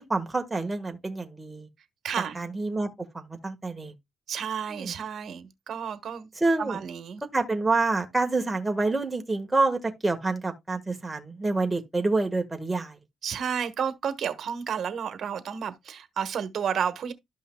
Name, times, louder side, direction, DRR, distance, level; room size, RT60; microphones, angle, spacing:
voice 1, 0.0-1.7 2.2-2.9 3.1-3.9 4.7-4.9 6.3-6.8 7.3-13.0, right 3 dB, 15° right, 1.4 m, -27 dB
voice 2, 2.0-2.4 4.3-6.3 6.6-7.2 13.2-17.1, right 7 dB, 60° right, 1.3 m, -31 dB
13.0 x 5.5 x 2.2 m
cardioid pair, 90°, 0 cm